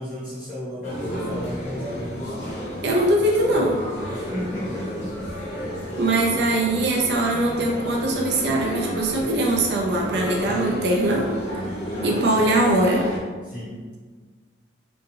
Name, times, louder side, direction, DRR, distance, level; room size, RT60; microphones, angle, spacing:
voice 1, 0.0-2.4 4.1-5.9 13.4-13.8, equal, 5° right, -11 dB, 0.5 m, -34 dB
sound 1, 0.8-13.2, equal, 40° left, 0.7 m, -32 dB
voice 2, 2.8-3.8 6.0-11.3 12.0-13.1, right 1 dB, 65° right, -1 dB, 0.4 m, -21 dB
2.8 x 2.7 x 2.6 m, 1.4 s
head